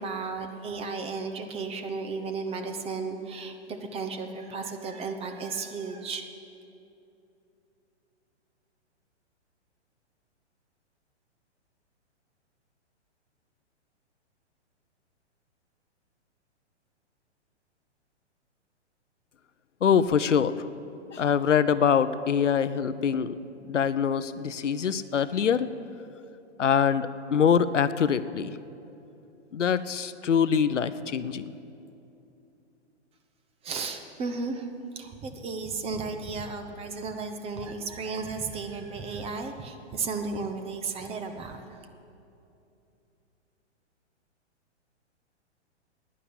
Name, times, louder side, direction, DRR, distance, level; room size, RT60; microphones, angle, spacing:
voice 1, 0.0-6.3 33.6-34.7 35.0-41.6, right 4 dB, 15° right, 7 dB, 0.9 m, -34 dB
voice 2, 19.8-20.5 21.1-23.4 23.6-25.7 26.6-28.5 29.5-31.5, left 7 dB, 85° left, 14 dB, 0.7 m, -24 dB
11.5 x 9.8 x 8.6 m, 2.8 s
hypercardioid pair, 120°, 35 cm